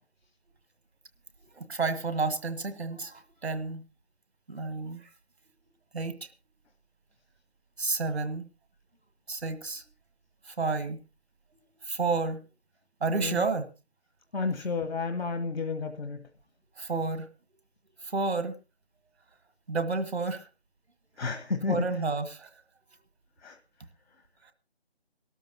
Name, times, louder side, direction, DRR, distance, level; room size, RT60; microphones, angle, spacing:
voice 1, 1.5-3.8 4.5-5.0 5.9-6.2 7.8-8.4 9.3-9.8 10.5-11.0 11.9-12.4 13.0-13.7 16.8-17.3 18.0-18.5 19.7-20.5 21.7-22.5, right 4 dB, 85° right, 1.6 m, -30 dB
voice 2, 13.1-13.4 14.3-16.2 21.2-21.8 23.4-23.6, left 4 dB, 70° left, 1.2 m, -31 dB
23.5 x 13.0 x 2.8 m
figure-of-eight pair, 170°, 32 cm